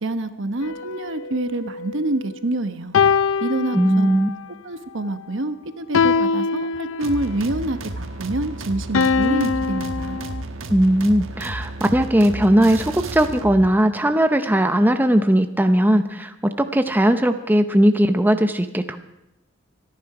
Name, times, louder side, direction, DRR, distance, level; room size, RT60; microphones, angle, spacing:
voice 1, 0.0-3.0 3.4-4.2 4.6-10.2, right 2 dB, 65° right, 9 dB, 1.1 m, -26 dB
sound 1, 0.6-2.4 2.9-4.4 5.9-7.4 8.9-10.4, left 5 dB, 90° left, 0.6 m, -23 dB
voice 2, 3.7-4.3 10.7-19.0, right 1 dB, 10° right, 8 dB, 0.6 m, -18 dB
sound 2, 7.0-13.7, right 2 dB, 90° right, 1.3 m, -33 dB
25.5 x 10.5 x 4.9 m, 0.89 s
head